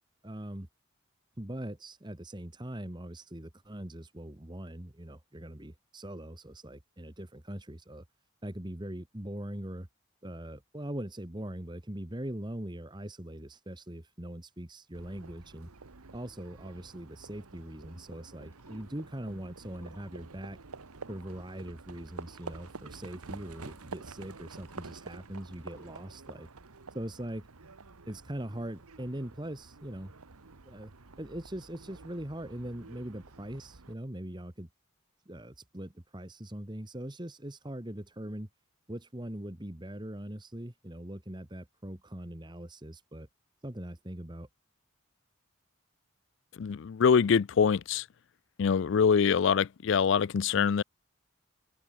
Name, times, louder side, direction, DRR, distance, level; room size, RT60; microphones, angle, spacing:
voice 1, 0.2-0.7 1.4-8.0 8.4-9.9 10.2-15.7 16.1-20.6 21.1-26.5 26.9-27.5 28.1-30.1 30.6-30.9 31.2-34.7 35.2-38.5 38.9-43.3 43.6-44.5, right 1 dB, 20° right, 1.5 m, -41 dB
Livestock farm animals working animals, 14.9-33.9, right 4 dB, 90° right, 1.3 m, -49 dB
sound 1, 18.5-18.9 19.5-20.2 20.8-21.4 22.1-22.7 23.4-23.8 24.4-25.0 25.5-26.0, left 3 dB, 10° left, 4.0 m, -65 dB
voice 2, 46.6-48.0 48.6-50.8, left 6 dB, 55° left, 0.4 m, -24 dB
head